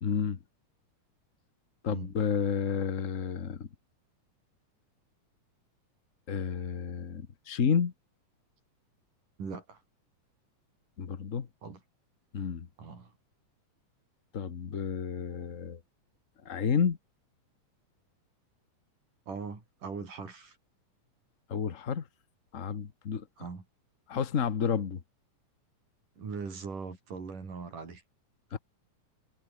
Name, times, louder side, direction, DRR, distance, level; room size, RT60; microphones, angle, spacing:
voice 1, 0.0-0.4 1.8-3.7 6.3-7.9 11.0-11.5 12.3-12.7 14.3-15.8 16.4-17.0 21.5-22.0 22.5-23.2 24.1-25.0 28.5-28.6, left 6 dB, 60° left, 0.8 m, -30 dB
voice 2, 9.4-9.8 11.6-11.8 12.8-13.1 19.3-20.6 23.4-23.6 26.2-28.0 28.5-28.6, right 5 dB, 85° right, 6.9 m, -40 dB
omnidirectional pair, 3.6 m